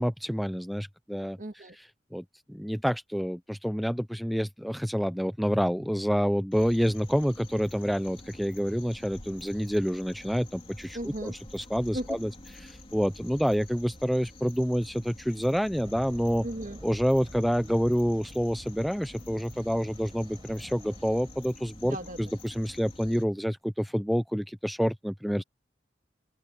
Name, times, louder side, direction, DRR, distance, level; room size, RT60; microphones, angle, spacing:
voice 1, 0.0-1.4 2.1-12.3 12.6-16.5 16.8-25.4, equal, ahead, 0.5 m, -28 dB
voice 2, 1.4-1.8 10.9-11.4 11.9-12.2 16.4-16.8 21.8-22.3, right 1 dB, 45° right, 1.8 m, -36 dB
sound 1, 6.5-23.2, left 2 dB, 30° left, 3.1 m, -49 dB
sound 2, 15.7-22.5, equal, 25° right, 7.9 m, -49 dB
head